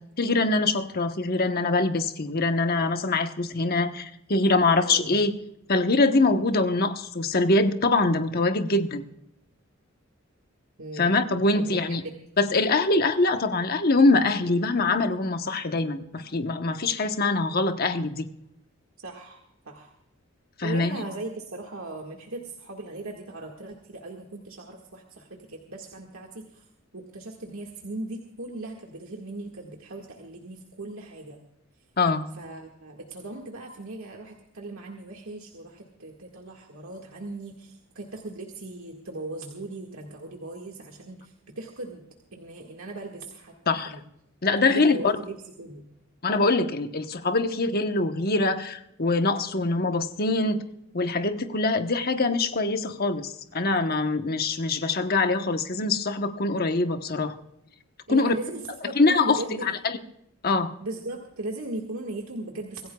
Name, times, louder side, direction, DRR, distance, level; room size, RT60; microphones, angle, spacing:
voice 1, 0.2-5.3 5.7-9.0 11.0-12.0 12.4-18.3 20.6-21.0 32.0-32.2 43.7-43.9 44.4-45.1 46.2-50.6 50.9-57.3 58.1-58.3 59.0-59.7 60.4-60.7, left 3 dB, 45° left, 7 dB, 1.1 m, -23 dB
voice 2, 4.8-5.2 10.8-11.2 11.5-12.1 19.0-19.9 20.6-26.7 26.9-31.4 32.3-42.0 42.3-44.0 44.6-45.9 58.1-59.7 60.8-62.9, right 2 dB, 85° right, 0 dB, 1.9 m, -38 dB
25.0 x 15.5 x 2.3 m, 0.79 s
head